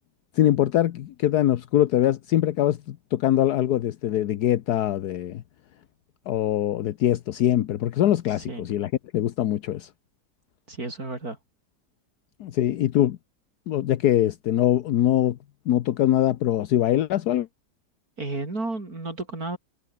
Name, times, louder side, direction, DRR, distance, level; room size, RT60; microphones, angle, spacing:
voice 1, 0.3-5.4 6.3-9.9 12.4-13.2 13.7-15.4 15.7-17.5, left 12 dB, 75° left, 1.3 m, -23 dB
voice 2, 8.3-8.7 10.7-11.4 18.2-19.6, right 2 dB, 60° right, 5.4 m, -32 dB
omnidirectional pair, 1.8 m